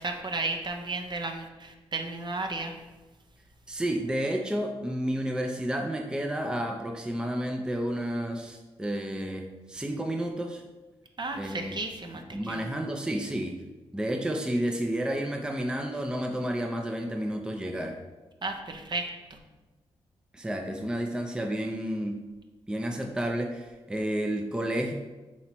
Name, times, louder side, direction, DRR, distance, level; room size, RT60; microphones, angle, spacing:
voice 1, 0.0-2.7 11.2-12.6 18.4-19.1, right 3 dB, 45° right, 4 dB, 0.7 m, -33 dB
voice 2, 3.7-10.6 11.3-11.8 12.3-13.6 13.9-18.0 20.3-22.2 22.7-24.9, right 1 dB, 5° right, 3 dB, 0.5 m, -31 dB
4.3 x 2.8 x 4.4 m, 1.1 s
supercardioid pair, 50°, 11 cm